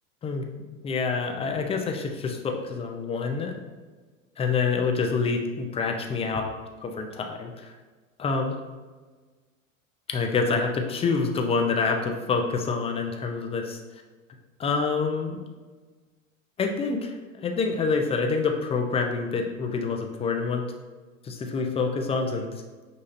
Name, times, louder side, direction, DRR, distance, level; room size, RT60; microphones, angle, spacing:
voice 1, 0.2-3.6 4.4-7.7 8.2-8.6 10.1-13.8 14.6-15.4 16.6-20.7 21.2-22.5, left 4 dB, 15° left, 3 dB, 0.4 m, -27 dB
6.6 x 2.7 x 2.6 m, 1.4 s
hypercardioid pair, 100°, 40 cm